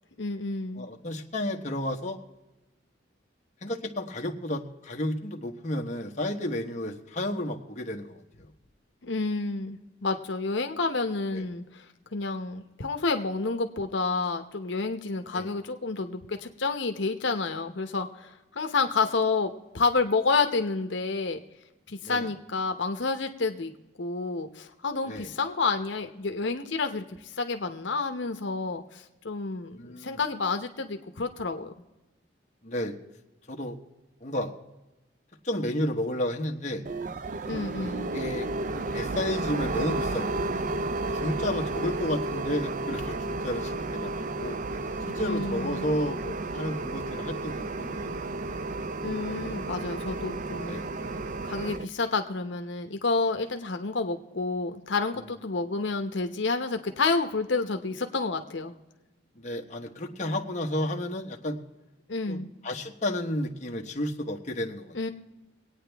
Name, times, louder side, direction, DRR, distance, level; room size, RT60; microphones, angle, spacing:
voice 1, 0.2-0.9 9.0-11.9 12.1-21.4 21.9-23.7 24.0-27.0 27.4-31.7 37.5-38.1 45.2-45.8 49.0-50.8 51.4-58.7 62.1-62.5 64.9-65.1, left 3 dB, 80° left, 6 dB, 0.9 m, -29 dB
voice 2, 0.8-2.2 3.6-8.2 11.3-11.4 15.3-15.5 22.0-22.3 25.1-25.3 29.7-30.2 32.6-32.9 33.5-33.8 34.2-34.5 35.4-36.8 37.7-38.5 38.7-40.6 41.2-44.6 45.0-48.1 50.6-50.9 59.4-61.6 62.3-64.9, left 1 dB, 40° left, 2 dB, 1.1 m, -32 dB
sound 1, 36.8-51.8, right 2 dB, 45° right, 0.5 m, -32 dB
23.5 x 9.0 x 3.4 m, 1.0 s
head